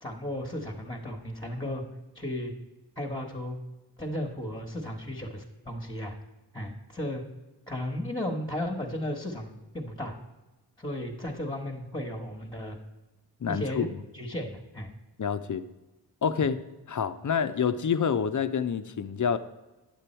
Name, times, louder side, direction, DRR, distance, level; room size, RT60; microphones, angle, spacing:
voice 1, 0.0-1.8 2.1-2.5 3.0-3.6 4.0-6.2 6.5-7.2 7.7-10.1 10.8-12.8 13.5-13.9 14.1-14.9, left 1 dB, 10° left, -1 dB, 1.4 m, -34 dB
voice 2, 13.4-13.9 15.2-15.7 16.2-16.6 16.9-19.4, left 7 dB, 45° left, 11 dB, 0.7 m, -27 dB
9.5 x 6.9 x 4.4 m, 1.1 s
cardioid pair, 40°, 41 cm